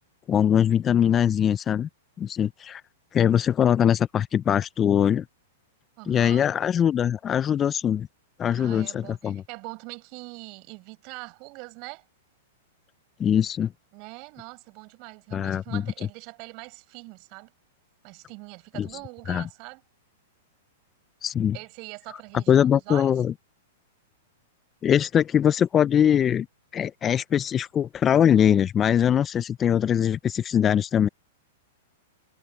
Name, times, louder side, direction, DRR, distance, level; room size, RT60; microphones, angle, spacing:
voice 1, 0.3-1.9 2.2-2.8 3.1-5.2 6.1-8.1 8.4-9.4 13.2-13.7 15.3-15.8 18.8-18.9 19.3-19.4 21.2-21.6 22.3-23.3 24.8-26.5 26.7-31.1, left 9 dB, 25° left, 0.5 m, -22 dB
voice 2, 6.0-6.5 8.5-12.0 13.9-17.5 18.0-19.8 21.5-23.2, right 30 dB, 45° right, 6.2 m, -42 dB
hypercardioid pair, 125°, 0 cm